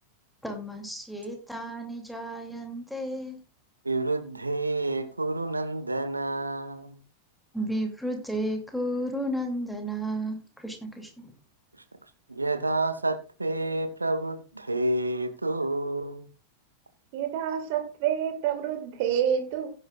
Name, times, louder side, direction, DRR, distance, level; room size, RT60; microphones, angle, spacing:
voice 1, 0.4-3.4 7.5-11.3, right 1 dB, ahead, 2.7 m, -33 dB
voice 2, 3.8-7.0 12.3-16.3, right 2 dB, 80° right, 1.3 m, -29 dB
voice 3, 17.1-19.7, right 9 dB, 50° right, 1.9 m, -28 dB
16.0 x 9.7 x 2.4 m
figure-of-eight pair, 90°, 0 cm